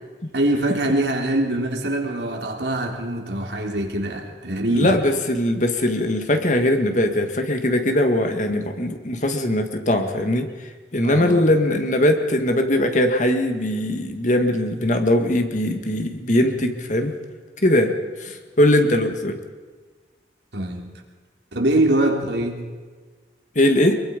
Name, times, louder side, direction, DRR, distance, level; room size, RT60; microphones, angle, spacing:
voice 1, 0.3-5.0 11.0-11.4 16.4-16.7 20.5-20.9 21.5-22.7, right 1 dB, 80° right, 1 dB, 3.5 m, -23 dB
voice 2, 4.7-10.5 10.9-17.1 17.6-17.9 18.2-19.4 23.6-23.9, left 1 dB, 45° left, 6 dB, 2.1 m, -20 dB
23.5 x 23.0 x 5.4 m, 1.4 s
head